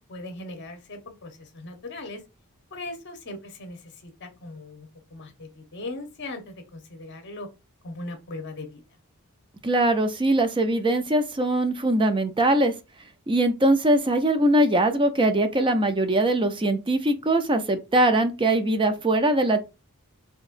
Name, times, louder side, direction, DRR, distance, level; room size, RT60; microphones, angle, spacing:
voice 1, 0.1-2.2 2.7-7.5 7.8-8.8, left 2 dB, 55° left, 1.0 m, -39 dB
voice 2, 9.6-12.7 13.3-19.7, right 1 dB, 20° right, 0.5 m, -22 dB
4.2 x 3.0 x 2.5 m
head